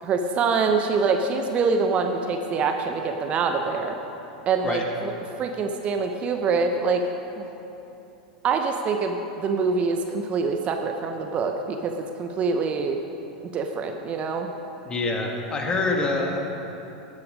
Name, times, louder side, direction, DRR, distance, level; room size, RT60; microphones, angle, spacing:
voice 1, 0.0-4.0 4.5-5.1 5.4-7.0 7.3-7.5 8.4-13.0 13.5-14.5, right 4 dB, 35° right, 5 dB, 0.8 m, -25 dB
voice 2, 14.9-16.4, left 3 dB, 25° left, 1 dB, 1.9 m, -26 dB
13.0 x 8.6 x 5.1 m, 3.0 s
figure-of-eight pair, 90°, 4 cm